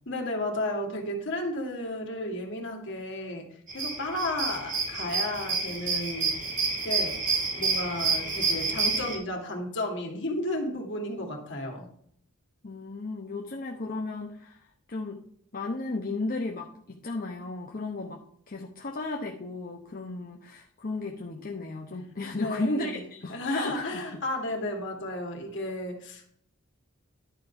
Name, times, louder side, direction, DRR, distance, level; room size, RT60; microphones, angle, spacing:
voice 1, 0.1-3.5 3.7-6.4 6.8-11.8 22.3-23.0 23.3-26.3, left 1 dB, 60° left, 1 dB, 2.5 m, -33 dB
sound 1, 3.7-9.2, right 4 dB, 35° right, 3.3 m, -29 dB
voice 2, 12.6-14.6 14.9-15.2 15.5-18.2 18.5-24.0, left 2 dB, 40° left, 1 dB, 0.9 m, -34 dB
11.5 x 5.2 x 5.8 m, 0.65 s
head